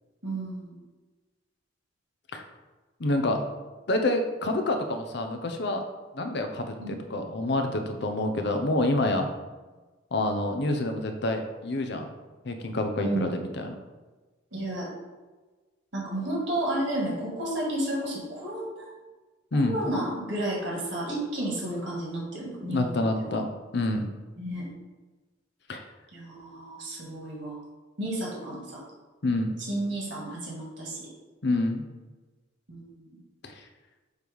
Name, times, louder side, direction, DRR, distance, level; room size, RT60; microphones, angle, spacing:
voice 1, 0.2-0.7 6.8-7.0 13.0-13.3 14.5-14.9 15.9-18.9 19.5-23.4 24.4-24.7 26.1-27.6 28.0-28.8 29.6-31.1 32.7-33.2, right 1 dB, 60° right, -3 dB, 2.0 m, -32 dB
voice 2, 3.0-3.4 3.9-5.8 6.1-9.3 10.1-12.0 12.4-13.7 19.5-19.8 22.6-23.5 23.7-24.1 25.7-25.8 29.2-29.5 31.4-31.8 33.4-33.5, left 2 dB, 55° left, 5 dB, 0.6 m, -27 dB
6.5 x 3.1 x 5.3 m, 1.3 s
head